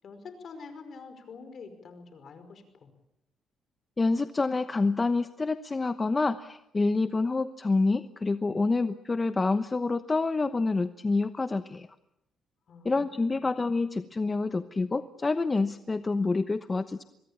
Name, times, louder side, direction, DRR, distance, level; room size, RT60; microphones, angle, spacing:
voice 1, 0.0-2.9 12.7-13.4, left 4 dB, 55° left, 9 dB, 5.2 m, -46 dB
voice 2, 4.0-11.9 12.8-17.0, left 3 dB, 25° left, 11 dB, 1.0 m, -27 dB
24.0 x 21.5 x 8.8 m, 0.82 s
cardioid pair, 90°, 0 cm